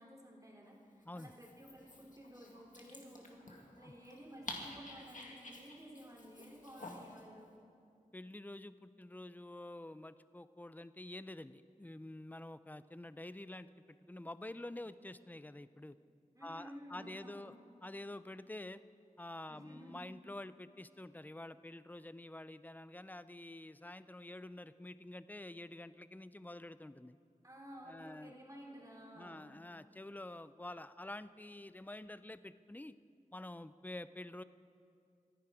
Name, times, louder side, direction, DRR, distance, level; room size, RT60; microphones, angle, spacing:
voice 1, 0.0-7.5 16.3-17.6 19.5-20.0 27.4-29.5, equal, 25° right, -2 dB, 3.5 m, -54 dB
Dog, 1.0-7.2, left 1 dB, 65° left, 2.0 m, -51 dB
voice 2, 8.1-16.0 16.4-17.5 17.8-18.8 19.2-27.2 27.9-28.3 29.2-33.0 33.3-34.4, left 1 dB, 10° left, 14 dB, 0.4 m, -48 dB
25.5 x 10.5 x 5.0 m, 2.4 s
wide cardioid pair, 55°, 14 cm